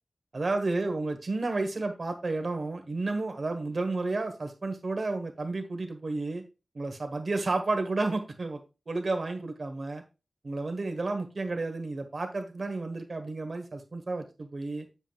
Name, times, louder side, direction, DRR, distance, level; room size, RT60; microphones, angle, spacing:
voice 1, 0.3-6.4 6.7-8.6 8.9-10.0 10.4-14.9, right 3 dB, 60° right, 5 dB, 1.4 m, -31 dB
7.7 x 7.1 x 2.4 m, 0.29 s
wide cardioid pair, 80°, 0 cm